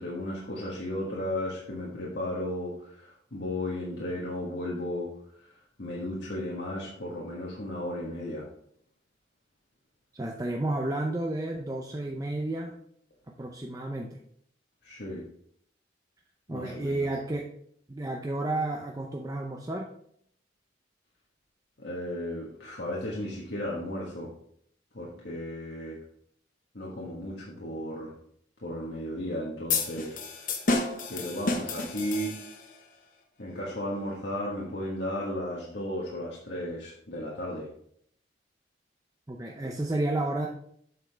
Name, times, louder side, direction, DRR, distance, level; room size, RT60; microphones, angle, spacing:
voice 1, 0.0-8.5 14.8-15.2 16.5-17.1 21.8-24.3 24.9-26.0 26.7-28.1 28.6-30.6 31.1-32.4 33.4-37.7, left 1 dB, 65° left, -5 dB, 1.4 m, -35 dB
voice 2, 10.1-12.7 13.4-14.2 16.5-17.5 17.9-19.9 39.3-40.5, right 2 dB, 20° right, 0 dB, 0.6 m, -31 dB
sound 1, 29.7-32.8, left 3 dB, 45° left, 0.9 m, -30 dB
8.0 x 6.3 x 3.4 m, 0.67 s
head